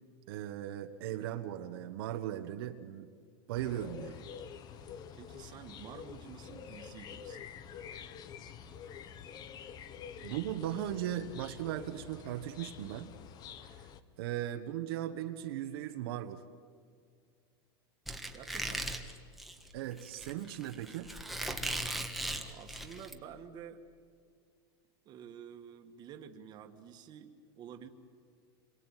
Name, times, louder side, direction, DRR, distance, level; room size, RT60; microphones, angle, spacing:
voice 1, 0.3-3.1 3.5-4.2 10.2-13.1 13.6-13.9 14.2-16.4 19.7-21.1, right 12 dB, 65° right, 6 dB, 1.4 m, -38 dB
sound 1, 3.5-14.0, left 7 dB, 30° left, 1.2 m, -48 dB
voice 2, 5.1-7.5 18.3-19.0 22.3-23.9 25.1-27.9, right 8 dB, 30° right, 5 dB, 1.9 m, -50 dB
Squeak, 18.1-23.1, right 1 dB, ahead, 1.7 m, -38 dB
28.0 x 22.5 x 9.3 m, 2.1 s
supercardioid pair, 150°, 13 cm